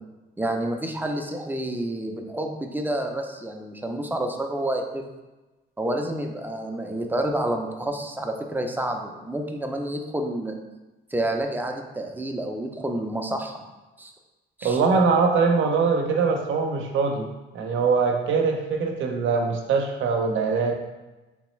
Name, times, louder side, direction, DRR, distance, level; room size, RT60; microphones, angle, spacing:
voice 1, 0.4-5.0 5.8-10.6 11.1-13.6 14.0-14.1 14.6-14.8, right 1 dB, 10° right, 3 dB, 0.4 m, -29 dB
voice 2, 14.6-17.3 17.5-20.7, right 5 dB, 75° right, 3 dB, 0.7 m, -22 dB
3.5 x 3.1 x 3.1 m, 1.1 s
cardioid pair, 90°, 20 cm